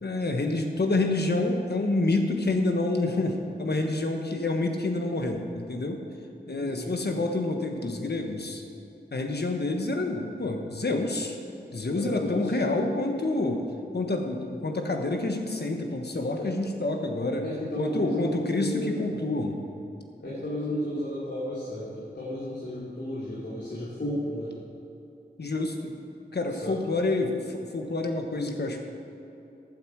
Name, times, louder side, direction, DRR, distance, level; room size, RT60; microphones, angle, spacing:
voice 1, 0.0-6.0 6.5-8.6 9.1-11.3 11.7-13.6 13.9-17.4 17.8-19.6 25.4-25.9 26.3-28.8, left 2 dB, 70° left, 3 dB, 1.4 m, -28 dB
voice 2, 6.6-6.9 11.9-12.5 16.4-16.5 17.4-19.2 20.2-24.5 26.5-26.7, equal, 85° left, -9 dB, 3.0 m, -33 dB
15.0 x 9.2 x 4.7 m, 2.8 s
wide cardioid pair, 50°, 18 cm